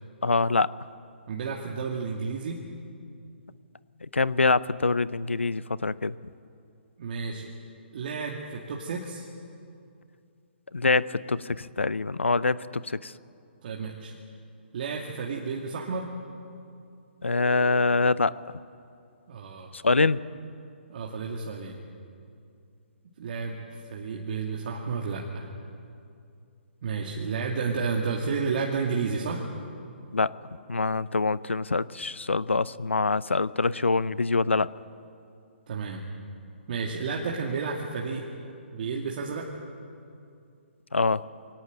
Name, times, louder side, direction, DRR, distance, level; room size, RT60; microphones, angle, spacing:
voice 1, 0.2-0.7 4.1-6.1 10.7-13.1 17.2-18.3 19.7-20.2 30.1-30.3 30.7-34.7 40.9-41.2, left 3 dB, 90° left, 18 dB, 0.7 m, -24 dB
voice 2, 1.3-2.6 7.0-7.5 7.9-9.3 13.6-14.1 14.7-16.1 19.3-19.7 20.9-21.8 23.2-25.5 26.8-29.4 35.7-36.0 36.7-38.2 38.7-39.5, right 5 dB, 50° right, -1 dB, 2.5 m, -31 dB
22.5 x 18.0 x 9.0 m, 2.5 s
figure-of-eight pair, 135°, 6 cm